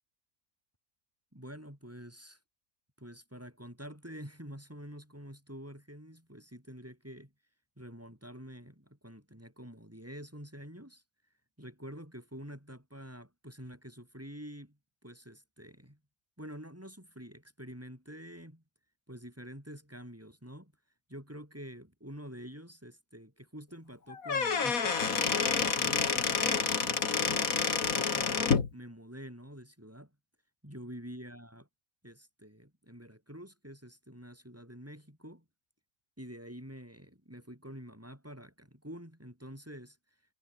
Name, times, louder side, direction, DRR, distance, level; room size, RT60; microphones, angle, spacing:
voice 1, 1.3-2.4 3.0-7.3 7.8-11.0 11.6-16.0 16.4-18.6 19.1-20.7 21.1-27.5 27.9-30.1 30.6-31.6 32.0-35.5 36.2-40.0, equal, 10° right, 7.1 m, -47 dB
Squeak / Wood, 24.1-28.7, left 5 dB, 70° left, 2.4 m, -28 dB
omnidirectional pair, 1.5 m